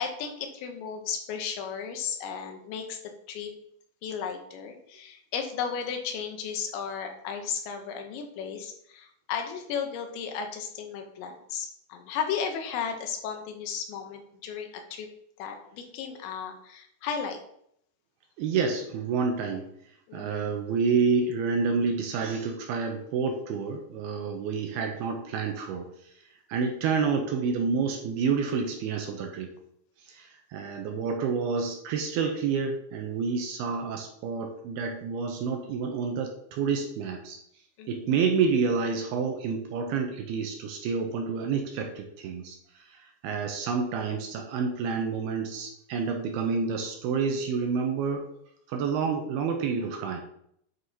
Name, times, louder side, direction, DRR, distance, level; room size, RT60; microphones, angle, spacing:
voice 1, 0.0-3.0 3.3-3.5 4.0-15.1 15.4-17.4 20.1-20.6 37.8-38.2, left 7 dB, 85° left, 5 dB, 3.3 m, -34 dB
voice 2, 18.4-19.7 20.1-25.9 26.5-29.5 30.1-37.4 37.9-42.6 43.0-48.2 48.7-50.2, right 5 dB, 80° right, 3 dB, 2.5 m, -28 dB
9.2 x 6.4 x 2.9 m, 0.70 s
omnidirectional pair, 5.1 m